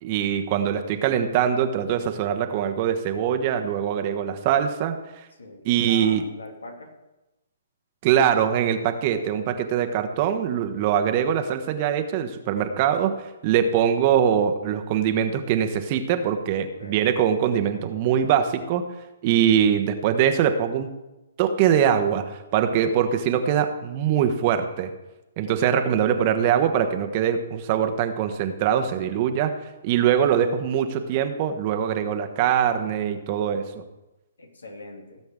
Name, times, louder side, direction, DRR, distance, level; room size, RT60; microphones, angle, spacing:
voice 1, 0.0-5.0 5.6-6.2 8.0-13.1 13.4-18.8 19.2-20.9 21.4-24.9 25.4-29.5 29.8-33.8, right 9 dB, 40° right, 7 dB, 1.1 m, -22 dB
voice 2, 5.4-6.9 16.6-17.1 25.4-25.9 34.4-35.2, left 2 dB, 80° left, 3 dB, 2.5 m, -42 dB
17.5 x 7.8 x 3.7 m, 1.0 s
figure-of-eight pair, 130°, 0 cm